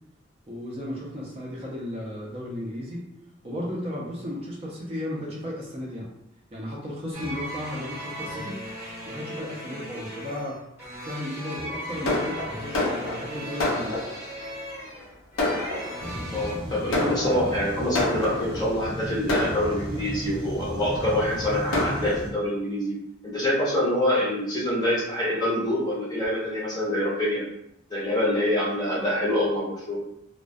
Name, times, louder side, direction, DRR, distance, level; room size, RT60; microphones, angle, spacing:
voice 1, 0.5-3.1 3.4-6.1 6.5-8.6 9.1-10.6 11.0-14.0, left 1 dB, 30° right, -4 dB, 0.5 m, -34 dB
sound 1, 7.1-16.5, equal, 10° right, 0.9 m, -37 dB
Fireworks, 12.1-14.4 15.0-15.1 15.4-16.3 16.9-18.7 19.3-20.2 20.9-21.0 21.3-21.4 21.7-22.1, left 2 dB, 80° left, 0.6 m, -28 dB
sound 2, 16.0-22.3, equal, 85° right, 0.7 m, -34 dB
voice 2, 16.3-22.9 23.2-27.5 27.9-30.0, left 1 dB, 20° left, -6 dB, 0.6 m, -26 dB
2.2 x 2.2 x 2.5 m, 0.79 s
head